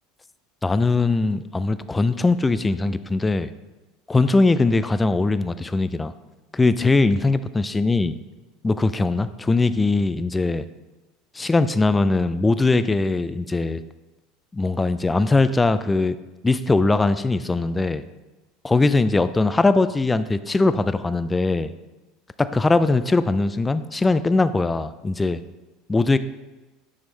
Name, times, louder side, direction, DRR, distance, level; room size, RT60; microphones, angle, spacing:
voice 1, 0.6-3.5 4.1-6.1 6.5-8.1 8.6-10.6 11.4-13.8 14.5-16.2 16.4-18.0 18.6-21.7 22.4-25.4 25.9-26.2, left 3 dB, 15° left, 13 dB, 0.3 m, -20 dB
8.3 x 3.6 x 3.2 m, 1.1 s
hypercardioid pair, 80°, 0 cm